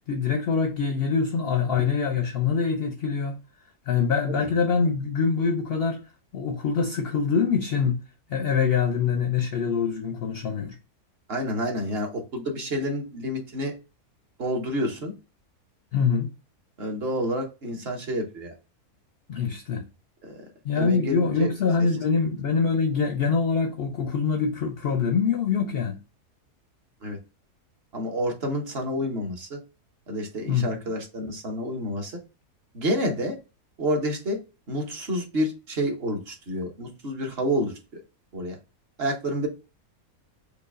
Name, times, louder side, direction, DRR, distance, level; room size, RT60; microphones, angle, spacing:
voice 1, 0.1-3.4 3.9-6.0 6.3-8.0 8.3-10.8 15.9-16.3 19.3-19.8 20.6-26.0 30.5-30.8, left 5 dB, 65° left, 0.6 m, -24 dB
voice 2, 11.3-13.7 14.4-15.1 16.8-18.5 20.2-20.4 20.7-21.5 27.0-27.2 27.9-29.6 30.1-32.2 32.7-33.4 33.8-34.4 34.7-38.0 38.3-38.6 39.0-39.5, equal, 45° right, 1.1 m, -29 dB
4.8 x 2.3 x 2.4 m
omnidirectional pair, 1.6 m